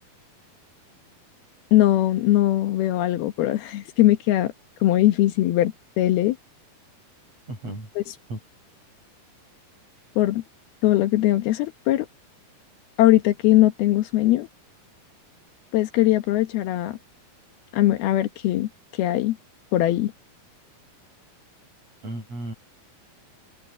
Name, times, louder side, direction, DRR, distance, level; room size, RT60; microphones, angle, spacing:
voice 1, 1.7-4.5 4.8-6.4 8.0-8.1 10.2-10.4 10.8-12.1 13.0-14.5 15.7-17.0 17.7-19.4 19.7-20.1, left 15 dB, 85° left, 3.2 m, -20 dB
voice 2, 7.5-7.9 8.3-8.4 22.0-22.5, right 1 dB, 40° right, 8.7 m, -34 dB
omnidirectional pair, 4.3 m